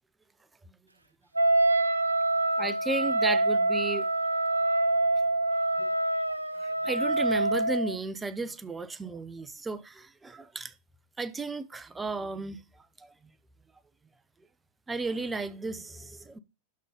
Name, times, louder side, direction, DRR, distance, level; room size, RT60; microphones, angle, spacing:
Wind instrument woodwind instrument, 1.3-8.0, right 2 dB, 80° right, 0.5 m, -26 dB
voice 1, 2.6-4.1 5.8-5.9 6.8-10.7 11.2-12.6 14.9-16.4, right 3 dB, 10° right, 0.8 m, -34 dB
12.0 x 4.0 x 5.1 m
figure-of-eight pair, 90°, 0 cm